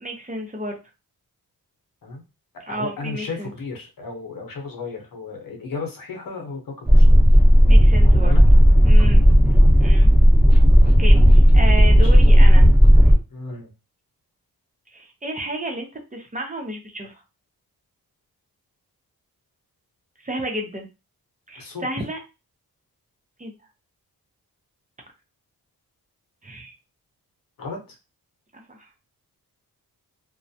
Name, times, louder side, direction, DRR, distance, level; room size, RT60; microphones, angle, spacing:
voice 1, 0.0-0.8 2.7-3.5 7.7-8.3 8.8-9.2 9.8-10.1 10.8-12.7 14.9-17.2 20.2-20.9 21.5-22.2 23.4-23.5 26.4-26.7 28.5-28.9, right 1 dB, 20° right, 1 dB, 0.6 m, -31 dB
voice 2, 2.7-7.0 8.2-8.4 9.0-9.2 12.0-12.1 13.3-13.7 21.6-21.9 27.6-28.0, left 3 dB, 60° left, 2 dB, 0.9 m, -34 dB
sound 1, 6.9-13.2, equal, 5° right, 1.0 m, -12 dB
2.2 x 2.0 x 2.7 m, 0.28 s
cardioid pair, 85°, 38 cm